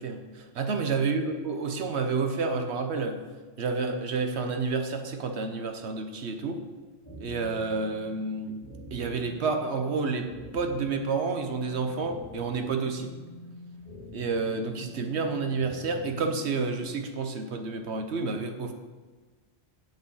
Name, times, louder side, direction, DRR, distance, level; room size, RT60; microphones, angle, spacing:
voice 1, 0.0-3.2 3.6-6.6 7.2-8.6 8.9-13.1 14.1-18.7, right 4 dB, 75° right, 6 dB, 1.2 m, -30 dB
sound 1, 7.0-17.0, left 1 dB, 10° left, 3.5 m, -46 dB
7.9 x 7.5 x 5.5 m, 1.3 s
omnidirectional pair, 1.2 m